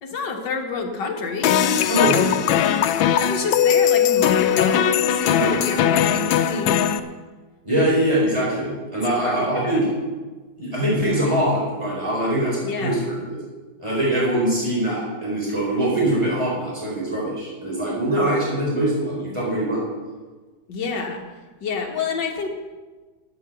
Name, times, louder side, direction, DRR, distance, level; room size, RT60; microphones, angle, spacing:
voice 1, 0.0-6.9 9.2-9.8 12.6-13.0 20.7-21.2 21.6-22.5, left 4 dB, 65° left, 2 dB, 2.2 m, -29 dB
sound 1, 1.4-7.0, left 9 dB, 90° left, 1.4 m, -19 dB
voice 2, 7.6-9.9 10.6-13.2 13.8-19.8, right 1 dB, 15° right, -5 dB, 4.7 m, -22 dB
11.5 x 9.2 x 6.9 m, 1.3 s
omnidirectional pair, 2.1 m